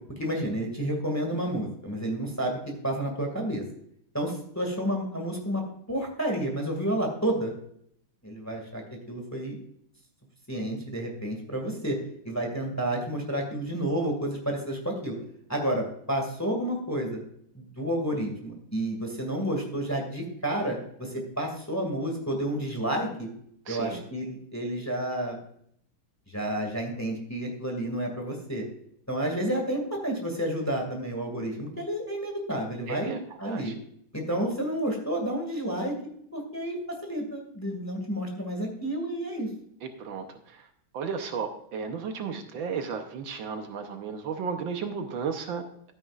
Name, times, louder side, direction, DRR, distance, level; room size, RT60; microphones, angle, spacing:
voice 1, 0.2-2.6 2.8-3.6 4.1-7.5 8.2-8.8 9.1-9.6 10.5-12.0 12.2-15.2 15.5-17.2 17.5-23.3 23.7-25.4 26.3-28.6 29.1-33.7 34.1-36.0 36.3-39.5, right 1 dB, 10° left, 1 dB, 1.8 m, -30 dB
voice 2, 23.7-24.0 32.9-33.7 39.8-40.7 40.9-45.6, right 6 dB, 70° right, 6 dB, 1.6 m, -34 dB
13.0 x 9.5 x 2.4 m, 0.68 s
omnidirectional pair, 2.2 m